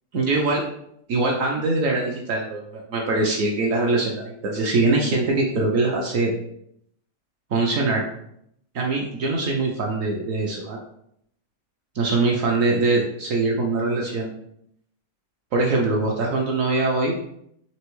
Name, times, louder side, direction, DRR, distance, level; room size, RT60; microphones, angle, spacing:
voice 1, 0.1-0.6 1.1-6.3 7.5-8.0 8.7-10.8 11.9-14.3 15.5-17.1, right 3 dB, 65° right, 0 dB, 0.8 m, -22 dB
4.4 x 3.0 x 3.0 m, 0.72 s
omnidirectional pair, 1.9 m